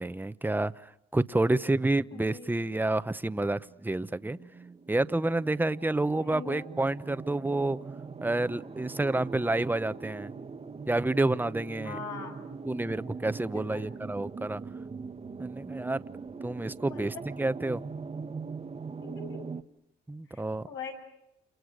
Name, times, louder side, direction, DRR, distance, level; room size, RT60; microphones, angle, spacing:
voice 1, 0.0-4.4 4.9-7.8 8.2-10.3 10.9-12.0 12.6-14.6 15.4-16.0 16.4-17.8 20.1-20.7, right 2 dB, 10° right, 14 dB, 1.0 m, -29 dB
voice 2, 1.6-2.5 6.1-6.7 11.8-12.4 13.5-13.9 16.8-17.2 19.0-19.5 20.3-20.9, left 5 dB, 85° left, 2 dB, 7.6 m, -42 dB
sound 1, 3.0-19.6, right 4 dB, 30° right, 1.4 m, -42 dB
29.0 x 29.0 x 6.5 m, 0.83 s
cardioid pair, 90°, 20 cm